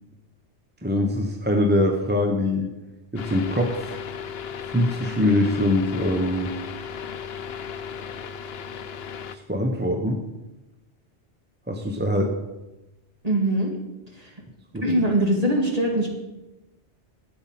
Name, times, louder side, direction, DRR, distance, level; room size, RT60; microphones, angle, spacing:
voice 1, 0.8-2.7 3.1-4.0 4.7-6.5 9.3-10.2 11.7-12.3 14.7-14.8, left 1 dB, 10° right, 2 dB, 0.9 m, -23 dB
sound 1, 3.2-9.4, left 7 dB, 65° left, 0.9 m, -35 dB
voice 2, 13.2-13.7 14.1-14.3 14.8-16.1, right 1 dB, 35° right, -2 dB, 2.3 m, -22 dB
12.5 x 8.8 x 5.9 m, 1.0 s
omnidirectional pair, 1.1 m